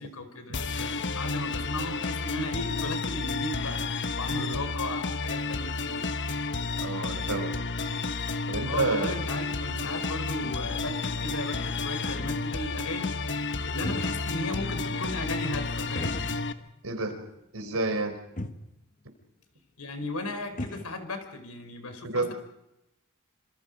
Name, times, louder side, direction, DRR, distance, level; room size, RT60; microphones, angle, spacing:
voice 1, 0.0-6.1 8.6-16.2 19.8-22.3, left 2 dB, 85° left, 8 dB, 4.6 m, -36 dB
sound 1, 0.5-16.5, left 3 dB, 55° left, 1.2 m, -31 dB
voice 2, 6.8-7.5 8.5-9.1 16.8-17.2 17.5-18.2 22.0-22.3, right 3 dB, 70° right, 7 dB, 4.7 m, -29 dB
sound 2, 11.4-12.6 13.6-14.5 14.8-14.9 15.9-16.8 17.1-17.2 18.0-18.1 18.4-18.7 20.0-20.1 20.3-20.9, left 1 dB, 40° left, 1.6 m, -38 dB
27.5 x 26.5 x 5.3 m, 0.88 s
head